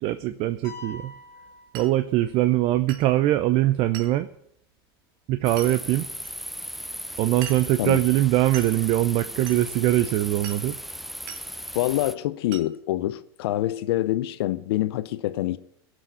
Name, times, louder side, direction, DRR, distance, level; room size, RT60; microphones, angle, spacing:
voice 1, 0.0-1.1 1.7-4.3 5.3-6.1 7.2-10.8, right 15 dB, 45° right, 0.6 m, -22 dB
sound 1, 0.6-2.5, left 2 dB, 25° left, 3.2 m, -44 dB
Glass, 1.7-2.0 2.9-3.1 3.9-4.2 5.6-5.7 6.2-6.3 7.4-7.8 8.5-8.8 9.5-9.7 10.4-10.7 11.3-11.5 12.5-12.7, right 9 dB, 70° right, 1.6 m, -40 dB
sound 2, 5.4-12.2, equal, ahead, 0.5 m, -37 dB
voice 2, 11.7-15.6, left 15 dB, 75° left, 0.7 m, -26 dB
17.5 x 6.3 x 8.0 m
supercardioid pair, 120°, 13 cm